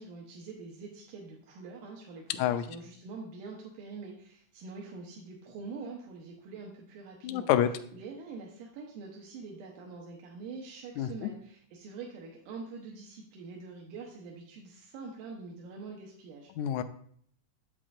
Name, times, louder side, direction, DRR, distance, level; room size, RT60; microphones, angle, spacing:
voice 1, 0.0-7.5 7.9-16.5, right 4 dB, 85° right, -1 dB, 2.4 m, -45 dB
voice 2, 7.2-7.7 11.0-11.3 16.6-16.8, left 11 dB, 85° left, 9 dB, 1.6 m, -27 dB
7.6 x 7.3 x 2.5 m, 0.63 s
omnidirectional pair, 3.7 m